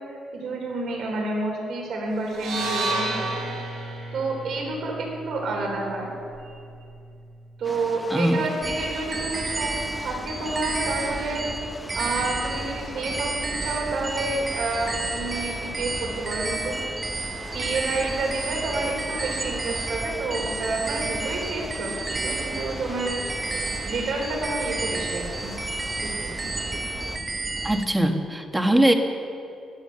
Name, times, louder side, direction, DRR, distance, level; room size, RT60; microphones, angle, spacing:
voice 1, 0.0-3.4 4.1-6.1 6.4-6.5 7.6-11.4 12.0-17.0 17.5-23.2 23.9-25.5 26.0-26.5, right 2 dB, 70° right, 0 dB, 3.8 m, -29 dB
sound 1, 2.3-6.5, right 2 dB, 85° right, 3.9 m, -31 dB
sound 2, 7.6-27.2, left 2 dB, 20° left, 0.8 m, -41 dB
sound 3, 8.6-27.9, right 3 dB, 25° right, 0.8 m, -31 dB
voice 2, 27.6-28.9, right 1 dB, 10° right, 5 dB, 1.3 m, -21 dB
13.5 x 10.0 x 6.7 m, 2.5 s
cardioid pair, 90°, 0 cm